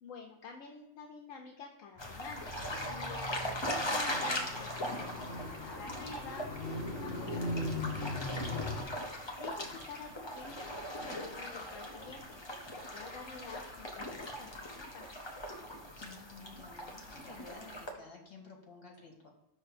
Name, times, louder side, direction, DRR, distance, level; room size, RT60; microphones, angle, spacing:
voice 1, 0.0-2.4 2.8-6.6 7.0-8.8 9.4-10.7 11.0-12.3 12.7-15.1, left 5 dB, 75° left, 2 dB, 1.1 m, -49 dB
Car, 1.9-8.8, left 2 dB, 25° right, 1.9 m, -40 dB
sound 1, 2.0-17.9, left 1 dB, 25° left, 0.7 m, -40 dB
voice 2, 15.9-19.3, left 4 dB, 50° left, 0 dB, 1.6 m, -53 dB
5.6 x 3.4 x 5.8 m, 0.95 s
omnidirectional pair, 1.3 m